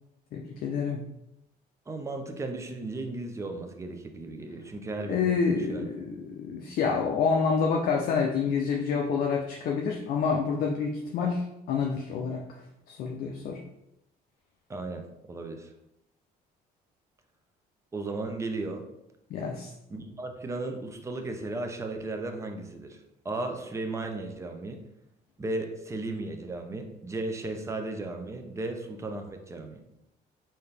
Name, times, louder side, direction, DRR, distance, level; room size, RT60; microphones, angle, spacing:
voice 1, 0.3-1.0 5.1-12.6 12.9-13.6 19.3-19.7, left 5 dB, 60° left, 0 dB, 0.5 m, -28 dB
voice 2, 1.9-5.9 14.7-15.7 17.9-18.8 19.9-23.0 23.2-24.8 25.4-29.8, right 2 dB, 15° right, 5 dB, 0.5 m, -35 dB
3.9 x 2.7 x 3.3 m, 0.85 s
cardioid pair, 110°, 17 cm